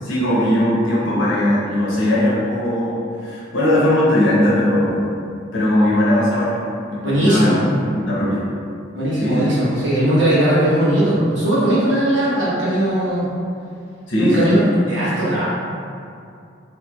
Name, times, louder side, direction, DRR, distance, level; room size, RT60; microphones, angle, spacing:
voice 1, 0.0-5.0 5.5-6.5 6.9-7.5 7.9-8.4 9.2-9.5 14.1-14.6, left 1 dB, 75° left, -7 dB, 0.8 m, -19 dB
voice 2, 7.0-7.6 8.9-13.3 14.1-15.4, right 1 dB, 70° right, -9 dB, 1.0 m, -18 dB
3.1 x 2.9 x 2.3 m, 2.4 s
head